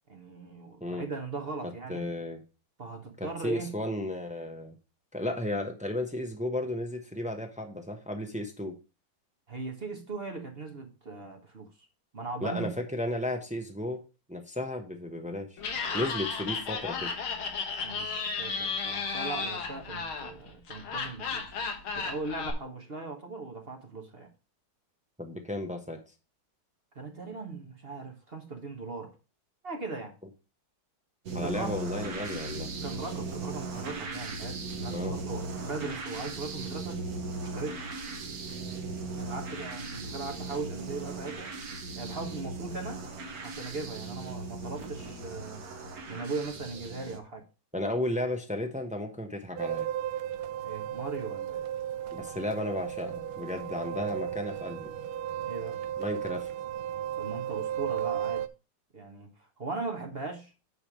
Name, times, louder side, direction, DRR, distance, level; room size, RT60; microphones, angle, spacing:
voice 1, 0.1-2.1 2.8-3.8 9.5-11.7 12.1-12.7 17.8-21.4 21.9-24.3 26.9-29.1 29.6-30.1 31.4-31.7 32.8-37.0 37.5-37.8 39.2-41.5 41.9-43.0 43.4-45.6 46.1-47.4 50.6-51.6 55.4-55.8 57.2-58.5 58.9-60.5, right 3 dB, 35° right, 1.2 m, -39 dB
voice 2, 1.6-2.4 3.2-4.8 5.1-8.7 12.4-14.0 14.3-15.6 15.9-17.1 25.2-26.0 31.3-32.7 34.9-35.2 47.7-49.9 52.1-54.9 56.0-56.5, left 1 dB, 5° right, 0.5 m, -34 dB
Laughter, 15.6-22.5, left 5 dB, 80° left, 2.2 m, -34 dB
sound 1, 31.3-47.2, right 3 dB, 50° right, 1.5 m, -38 dB
sound 2, 49.6-58.5, right 10 dB, 85° right, 1.5 m, -35 dB
9.8 x 3.4 x 6.0 m
omnidirectional pair, 2.2 m